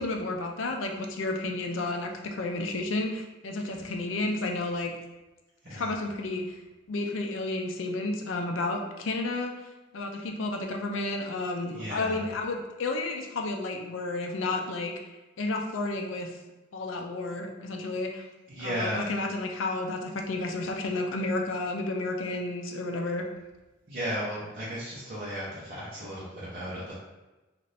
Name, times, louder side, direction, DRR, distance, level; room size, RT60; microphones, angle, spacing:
voice 1, 0.0-4.9 5.7-6.6 6.9-9.5 9.9-14.9 15.4-16.3 16.7-18.2 18.6-23.2, left 2 dB, 75° left, 3 dB, 0.4 m, -31 dB
voice 2, 11.7-12.2 18.5-19.1 23.9-26.9, equal, 45° right, -9 dB, 0.7 m, -34 dB
2.6 x 2.5 x 3.2 m, 1.1 s
head